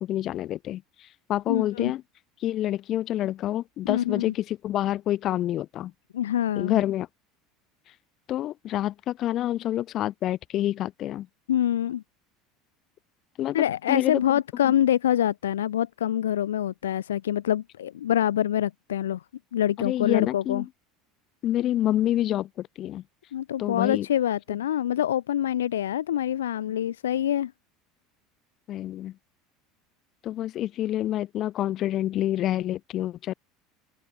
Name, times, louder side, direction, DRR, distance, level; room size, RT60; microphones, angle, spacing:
voice 1, 0.0-2.0 2.4-5.9 6.6-7.1 8.3-11.3 13.4-14.7 19.8-20.7 21.4-23.0 23.6-24.1 28.7-29.1 30.2-33.3, left 13 dB, 50° left, 2.4 m, -28 dB
voice 2, 1.5-1.9 3.9-4.3 6.1-6.8 11.5-12.0 13.5-19.2 19.5-20.6 23.3-27.5, left 11 dB, 80° left, 1.0 m, -25 dB
open air
hypercardioid pair, 75°, 0 cm